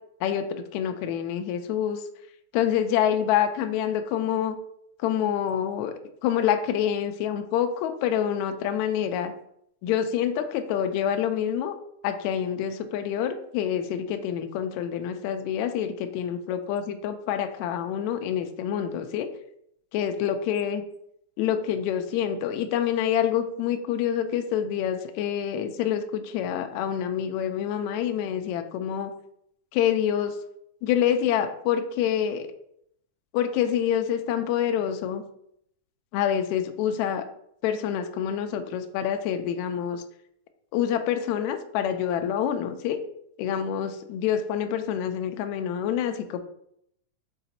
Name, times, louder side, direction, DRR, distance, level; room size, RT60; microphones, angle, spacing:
voice 1, 0.2-2.0 2.5-4.6 5.0-5.9 6.2-9.3 9.8-11.7 12.0-19.3 19.9-20.8 21.4-29.1 29.7-30.3 30.8-32.5 33.3-35.2 36.1-37.2 37.6-40.0 40.7-43.0 43.4-46.4, left 9 dB, 80° left, 7 dB, 1.7 m, -27 dB
5.9 x 3.9 x 4.3 m, 0.72 s
omnidirectional pair, 3.8 m